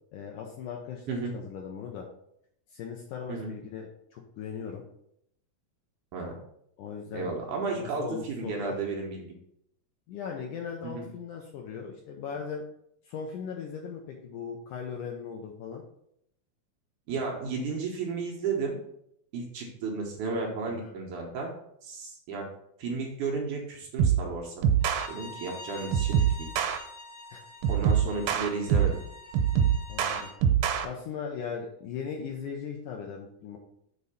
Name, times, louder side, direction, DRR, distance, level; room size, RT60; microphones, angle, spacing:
voice 1, 0.1-2.1 2.7-4.8 6.8-7.3 7.7-8.8 10.1-12.6 13.1-15.8 20.7-20.9 27.3-27.4 29.9-30.3 30.8-33.6, left 6 dB, 75° left, 1 dB, 1.9 m, -38 dB
voice 2, 7.1-9.4 10.8-11.1 17.1-18.8 19.3-21.5 21.8-22.5 22.8-24.6 25.1-26.5 27.7-29.0, right 4 dB, 70° right, -1 dB, 2.2 m, -33 dB
sound 1, 24.0-24.3 24.6-25.1 25.9-26.8 27.6-29.0 29.3-30.9, right 8 dB, 90° right, 2.7 m, -24 dB
Bowed string instrument, 24.8-30.4, left 2 dB, 55° left, 3.9 m, -46 dB
6.7 x 4.1 x 5.5 m, 0.73 s
omnidirectional pair, 4.4 m